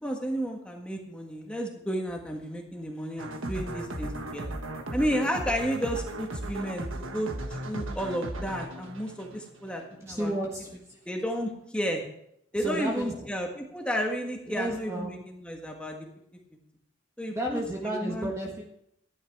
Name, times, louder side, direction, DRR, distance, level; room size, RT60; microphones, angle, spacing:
voice 1, 0.0-4.5 4.9-10.3 11.0-12.0 12.5-16.1 17.2-18.3, equal, 5° left, 1 dB, 1.6 m, -32 dB
sound 1, 3.2-10.0, right 1 dB, 80° right, 1.4 m, -36 dB
voice 2, 10.1-11.0 12.5-13.3 14.5-15.1 17.3-18.7, right 1 dB, 15° right, -1 dB, 1.3 m, -32 dB
13.0 x 10.5 x 4.7 m, 0.75 s
head